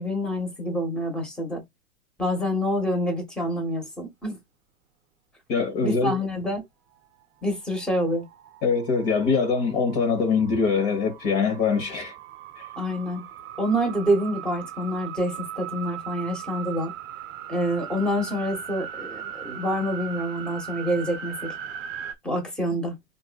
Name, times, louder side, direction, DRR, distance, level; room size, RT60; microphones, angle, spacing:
voice 1, 0.0-1.6 2.2-4.4 5.8-6.6 7.4-8.3 12.7-13.2 13.6-16.9 17.5-21.5 22.2-23.0, equal, ahead, 1.4 m, -27 dB
voice 2, 5.5-6.2 8.6-12.1, left 5 dB, 35° left, 1.3 m, -23 dB
sound 1, 7.7-22.1, right 9 dB, 30° right, 0.8 m, -39 dB
4.5 x 2.6 x 2.4 m
figure-of-eight pair, 110°, 41 cm